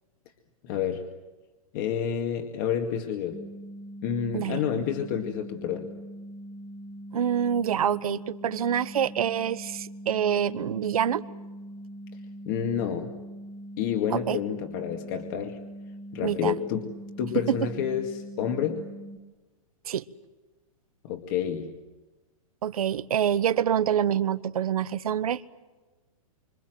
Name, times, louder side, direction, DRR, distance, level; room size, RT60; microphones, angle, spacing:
voice 1, 0.6-1.1 1.7-3.4 4.0-5.9 12.5-13.1 13.8-15.6 16.1-16.8 17.2-18.8 21.0-21.7, left 8 dB, 35° left, 4 dB, 2.1 m, -29 dB
sound 1, 3.3-19.2, right 1 dB, 5° right, 1.4 m, -42 dB
voice 2, 7.1-11.2 14.1-14.4 16.2-16.5 17.3-17.6 19.9-20.0 22.6-25.4, right 9 dB, 80° right, 14 dB, 1.3 m, -26 dB
28.5 x 26.0 x 7.8 m, 1.2 s
hypercardioid pair, 170°, 18 cm